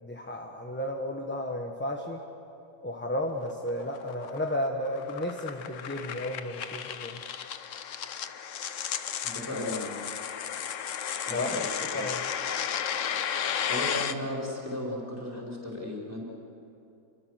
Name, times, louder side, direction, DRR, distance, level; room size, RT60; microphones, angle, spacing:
voice 1, 0.0-2.2 2.8-7.2 11.3-11.5 11.9-12.2, left 1 dB, 10° left, 2 dB, 1.1 m, -33 dB
sound 1, 3.4-14.1, left 8 dB, 60° left, 1.1 m, -34 dB
voice 2, 9.2-10.0 11.3-11.6 11.9-12.0 13.7-16.2, left 1 dB, 10° right, -3 dB, 4.8 m, -35 dB
29.0 x 23.5 x 6.5 m, 2.8 s
omnidirectional pair, 1.6 m